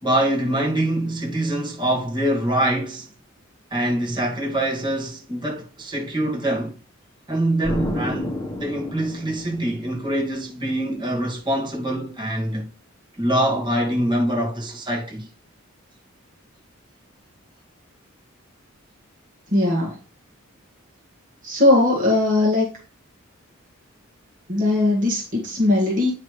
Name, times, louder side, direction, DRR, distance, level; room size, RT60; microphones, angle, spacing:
voice 1, 0.0-3.1 3.7-6.7 7.3-12.7 13.2-15.3, right 1 dB, 20° right, 2.3 m, -24 dB
Explosion, 7.6-10.3, left 1 dB, 20° left, 1.1 m, -30 dB
voice 2, 19.5-20.0 21.4-22.7 24.5-26.1, left 2 dB, 40° right, 2.0 m, -19 dB
9.4 x 5.7 x 3.3 m
head